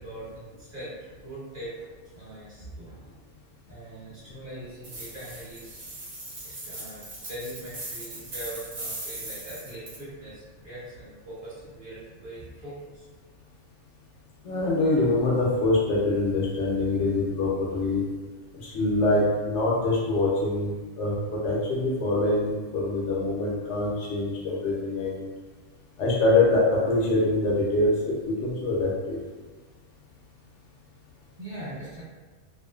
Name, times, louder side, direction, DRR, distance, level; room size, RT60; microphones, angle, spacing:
voice 1, 0.0-1.7 2.1-3.1 3.7-5.8 6.4-7.0 7.3-13.0 31.4-32.0, right 1 dB, 35° right, -11 dB, 1.1 m, -41 dB
sound 1, 4.8-10.0, right 1 dB, 50° right, 0.6 m, -39 dB
voice 2, 14.4-18.0 18.6-25.2 26.0-29.2, left 2 dB, 70° left, -4 dB, 0.8 m, -24 dB
2.5 x 2.4 x 2.4 m, 1.3 s
omnidirectional pair, 1.3 m